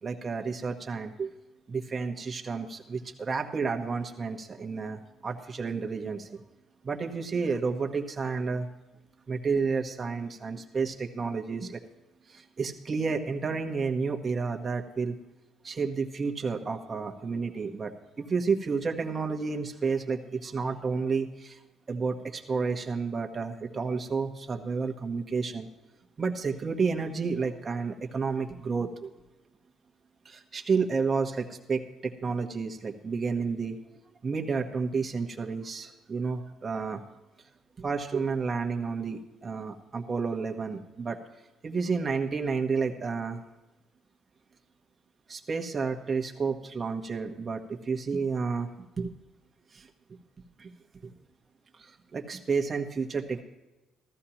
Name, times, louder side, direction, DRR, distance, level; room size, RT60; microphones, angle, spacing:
voice 1, 0.0-1.3 1.7-6.4 6.8-8.7 9.3-11.8 12.3-15.2 15.6-17.9 18.2-21.6 21.9-25.7 26.2-29.1 30.2-33.8 34.2-37.0 37.8-41.2 41.6-43.4 45.3-48.7 49.0-49.1 49.7-49.9 50.6-50.7 51.0-51.1 51.8-53.4, right 5 dB, 30° right, 3 dB, 1.2 m, -31 dB
14.5 x 14.5 x 3.0 m, 1.0 s
cardioid pair, 130°, 0 cm